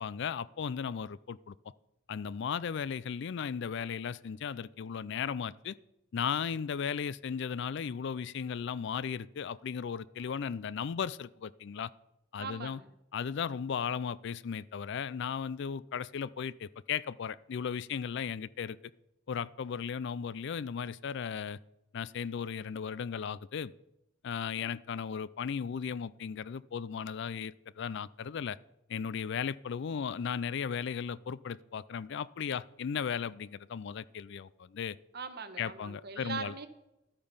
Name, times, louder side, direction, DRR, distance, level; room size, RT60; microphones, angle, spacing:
voice 1, 0.0-1.5 2.1-5.7 6.1-11.9 12.3-12.8 13.1-18.8 19.3-21.6 21.9-23.7 24.2-28.6 28.9-35.0 35.6-36.5, left 7 dB, 60° left, 20 dB, 0.4 m, -36 dB
voice 2, 12.4-12.9 35.1-36.7, right 4 dB, 50° right, 8 dB, 1.2 m, -41 dB
12.5 x 8.7 x 5.5 m, 0.90 s
head